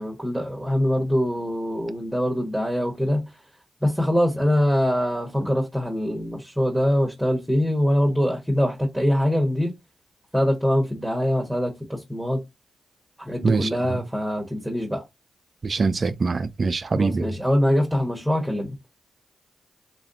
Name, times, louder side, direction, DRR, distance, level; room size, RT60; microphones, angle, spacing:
voice 1, 0.0-3.2 3.8-9.7 10.3-12.4 13.2-15.0 16.9-18.7, equal, 5° right, 1.0 m, -23 dB
voice 2, 15.6-17.3, right 4 dB, 50° right, 0.4 m, -23 dB
3.1 x 2.5 x 2.6 m
supercardioid pair, 45°, 0 cm